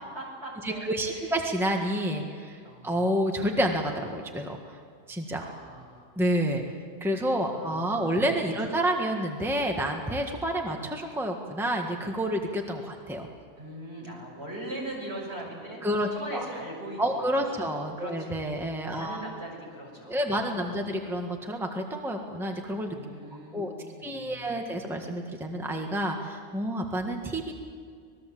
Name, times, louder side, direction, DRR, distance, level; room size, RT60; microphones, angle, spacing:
voice 1, 0.0-1.4 2.6-3.1 5.4-6.1 7.5-8.6 13.6-18.3 18.9-20.9 22.9-24.8, right 1 dB, 60° right, -2 dB, 6.8 m, -41 dB
voice 2, 0.6-4.6 5.1-5.4 6.2-6.6 7.0-13.3 15.8-16.4 17.0-19.2 20.1-23.0 23.5-23.7 24.0-27.5, equal, ahead, 2 dB, 1.6 m, -29 dB
25.5 x 20.0 x 7.7 m, 2.1 s
omnidirectional pair, 1.2 m